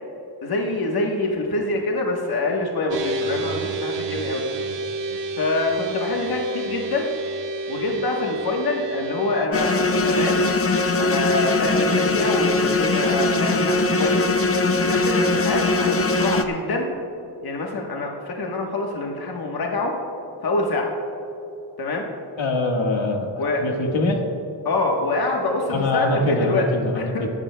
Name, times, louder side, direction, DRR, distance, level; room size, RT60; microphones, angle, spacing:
voice 1, 0.4-4.4 5.4-7.1 7.7-9.8 10.1-10.5 11.0-14.3 14.8-16.9 17.4-19.9 20.4-20.9 21.8-22.0 23.4-23.6 24.6-26.6 26.9-27.2, left 2 dB, 50° left, 0 dB, 1.2 m, -25 dB
sound 1, 2.9-9.5, right 2 dB, 65° right, 1.0 m, -29 dB
sound 2, 9.5-16.4, left 2 dB, 30° left, 0.6 m, -21 dB
voice 2, 22.4-23.3 23.6-24.2 25.7-27.3, left 2 dB, 75° left, 2 dB, 1.6 m, -23 dB
22.5 x 11.5 x 2.2 m, 2.9 s
wide cardioid pair, 180°, 46 cm